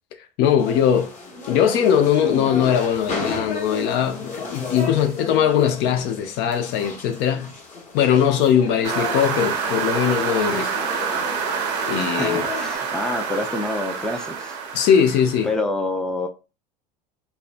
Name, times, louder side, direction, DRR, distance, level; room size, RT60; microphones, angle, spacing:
voice 1, 0.4-1.1 1.5-7.5 7.9-10.7 11.9-12.5 14.7-15.5, left 8 dB, 60° left, 0.5 m, -20 dB
sound 1, 0.6-12.8, left 3 dB, 35° left, 0.9 m, -33 dB
sound 2, 8.8-15.5, right 6 dB, 85° right, 0.7 m, -27 dB
voice 2, 12.0-14.6 15.4-16.3, left 2 dB, 5° left, 0.4 m, -27 dB
2.5 x 2.1 x 2.4 m
supercardioid pair, 95°, 20 cm